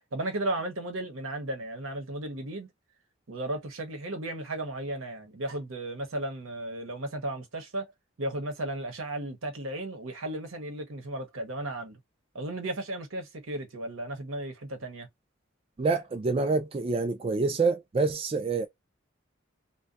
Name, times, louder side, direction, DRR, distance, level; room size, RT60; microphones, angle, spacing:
voice 1, 0.1-2.7 3.3-7.9 8.2-12.0 12.3-15.1, right 1 dB, 85° right, 0.9 m, -35 dB
voice 2, 15.8-18.7, right 4 dB, 30° right, 0.3 m, -27 dB
2.6 x 2.2 x 2.3 m
head